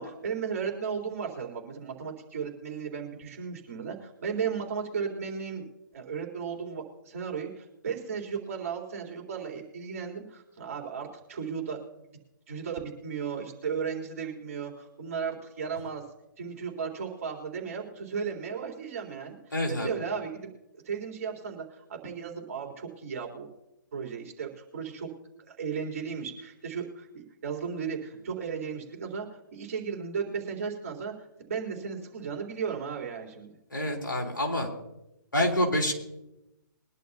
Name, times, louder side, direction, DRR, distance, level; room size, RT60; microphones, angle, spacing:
voice 1, 0.0-5.6 5.9-11.8 12.5-16.0 16.4-20.3 20.9-23.5 23.9-25.1 25.5-31.1 31.5-33.5, right 6 dB, 45° right, 0 dB, 3.7 m, -35 dB
voice 2, 19.5-19.9 33.7-34.7 35.3-35.9, left 1 dB, 75° left, 0 dB, 3.6 m, -27 dB
22.5 x 11.0 x 2.9 m, 0.90 s
figure-of-eight pair, 130°, 11 cm